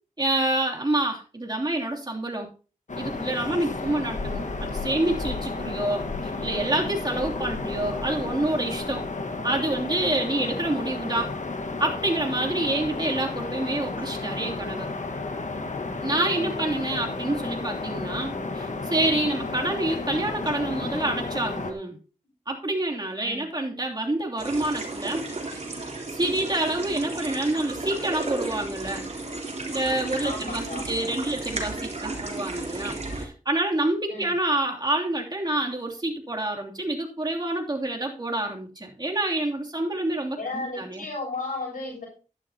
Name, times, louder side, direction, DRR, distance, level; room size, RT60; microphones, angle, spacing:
voice 1, 0.2-2.5 3.0-9.1 9.4-11.3 11.8-14.9 16.0-22.0 22.5-25.6 26.1-29.1 29.7-41.0, right 1 dB, 30° right, 0 dB, 3.0 m, -27 dB
sound 1, 2.9-21.7, left 3 dB, 60° left, 1.5 m, -32 dB
sound 2, 24.4-33.2, right 2 dB, 50° right, 3.4 m, -33 dB
voice 2, 30.2-31.2 34.1-34.4 40.3-42.1, left 3 dB, 85° left, -4 dB, 7.0 m, -35 dB
12.0 x 11.0 x 2.9 m, 0.35 s
wide cardioid pair, 60°, 14 cm